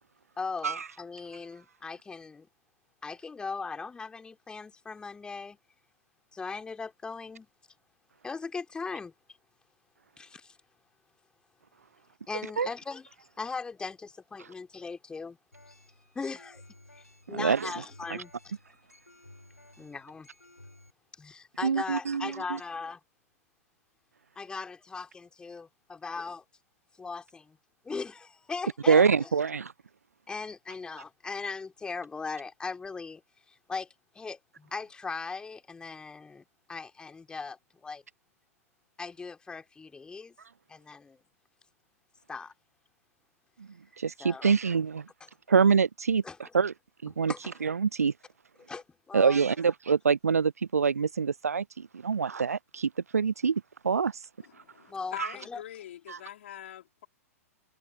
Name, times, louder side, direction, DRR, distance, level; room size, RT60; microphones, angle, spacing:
voice 1, 0.4-2.5 3.0-5.6 6.3-7.5 8.2-9.1 10.2-10.6 12.3-15.4 16.2-16.6 16.9-18.6 19.8-20.3 21.2-23.0 24.4-26.4 27.0-27.6 27.8-29.3 30.3-33.2 33.5-38.0 39.0-40.4 40.7-41.2 42.3-42.5 44.2-44.5 46.2-46.5 47.3-47.6 48.7-49.7 54.9-55.2 55.4-55.6, left 4 dB, 10° left, 3.7 m, -39 dB
sound 1, 15.5-20.9, left 1 dB, 90° left, 6.6 m, -55 dB
voice 2, 17.3-17.7 21.6-22.3 28.9-29.7 44.0-45.1 45.5-46.2 46.5-46.7 47.0-47.3 47.6-48.1 49.1-54.1 55.2-55.3 56.1-56.2, right 6 dB, 75° right, 0.5 m, -25 dB
voice 3, 54.4-57.1, left 11 dB, 55° left, 3.9 m, -44 dB
figure-of-eight pair, 105°, 8 cm